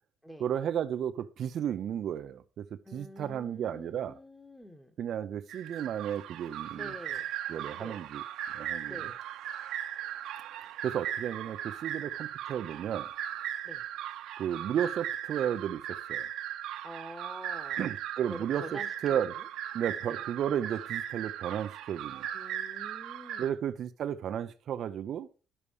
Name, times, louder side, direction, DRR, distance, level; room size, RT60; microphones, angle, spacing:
voice 1, 0.4-4.1 5.0-6.9 7.5-8.2 8.5-9.0 10.6-13.1 14.4-16.3 17.8-19.3 19.7-22.3 23.4-25.3, right 9 dB, 55° right, 0.6 m, -33 dB
voice 2, 2.8-4.9 6.7-7.3 7.7-8.0 8.8-9.2 13.6-13.8 16.8-17.8 18.2-19.5 20.1-20.2 22.3-23.6, equal, ahead, 1.5 m, -46 dB
sound 1, 5.5-23.5, right 10 dB, 75° right, 1.0 m, -38 dB
11.0 x 7.0 x 4.8 m
cardioid pair, 110°, 0 cm